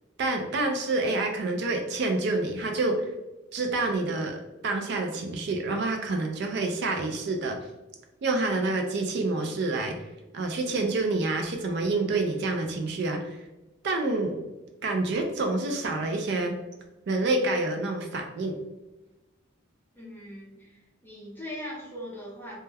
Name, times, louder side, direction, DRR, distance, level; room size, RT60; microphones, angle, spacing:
voice 1, 0.2-3.1 3.5-7.6 8.2-9.9 10.3-13.4 13.8-14.4 14.8-16.6 17.1-18.5, right 2 dB, 55° right, 3 dB, 0.3 m, -28 dB
voice 2, 20.0-22.6, equal, 10° left, -5 dB, 0.7 m, -40 dB
2.2 x 2.1 x 3.2 m, 1.0 s
head